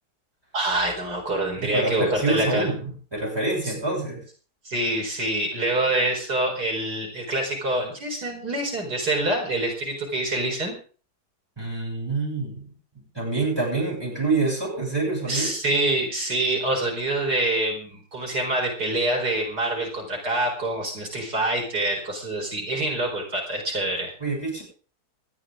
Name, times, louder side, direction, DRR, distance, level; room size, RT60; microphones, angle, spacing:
voice 1, 0.5-2.7 3.6-3.7 4.6-10.8 15.3-24.1, right 1 dB, 85° right, 1 dB, 5.0 m, -26 dB
voice 2, 1.6-4.2 11.6-15.5 24.2-24.6, right 3 dB, 15° right, -3 dB, 8.1 m, -26 dB
19.5 x 13.0 x 3.8 m, 0.39 s
omnidirectional pair, 1.7 m